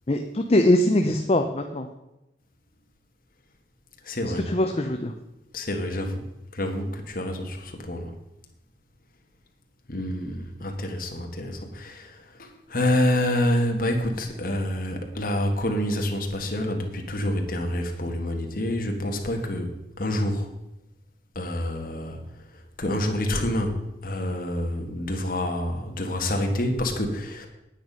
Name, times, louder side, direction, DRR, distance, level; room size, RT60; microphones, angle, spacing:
voice 1, 0.1-1.9 4.5-5.1, left 1 dB, 35° left, 5 dB, 0.6 m, -22 dB
voice 2, 4.0-4.4 5.5-6.2 6.5-8.1 9.9-19.7 20.0-20.5 21.3-22.2 22.8-27.5, left 1 dB, 50° left, 3 dB, 1.6 m, -27 dB
9.2 x 9.2 x 5.4 m, 0.91 s
head